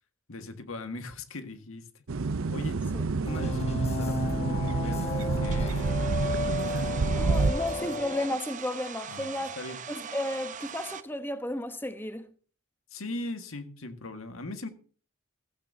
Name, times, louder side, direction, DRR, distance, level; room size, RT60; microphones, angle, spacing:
voice 1, 0.3-2.0 2.5-2.9 3.2-6.4 7.2-7.4 7.8-8.0 9.1-9.8 12.9-14.7, left 2 dB, 80° left, 1.8 m, -40 dB
sound 1, 2.1-7.5, right 3 dB, 75° right, 0.6 m, -28 dB
sound 2, 3.3-8.3, left 2 dB, 30° left, 1.2 m, -33 dB
Domestic sounds home sounds, 5.4-11.0, right 7 dB, 35° right, 0.8 m, -41 dB
voice 2, 7.2-9.6 9.9-12.3, left 1 dB, 10° left, 1.0 m, -33 dB
15.5 x 14.5 x 2.8 m
head